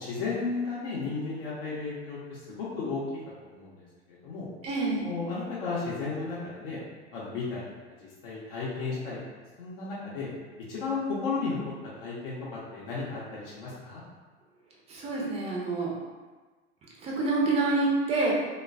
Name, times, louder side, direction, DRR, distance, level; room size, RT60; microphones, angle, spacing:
voice 1, 0.0-3.0 3.4-4.5 5.0-6.8 7.1-7.6 8.0-9.2 9.6-10.3 10.7-11.7 12.0-14.0, left 4 dB, 55° left, -7 dB, 0.7 m, -34 dB
voice 2, 4.6-5.1 14.9-15.9 17.0-18.3, right 3 dB, 20° right, -2 dB, 0.5 m, -27 dB
3.1 x 2.2 x 2.3 m, 1.3 s
figure-of-eight pair, 80°, 35 cm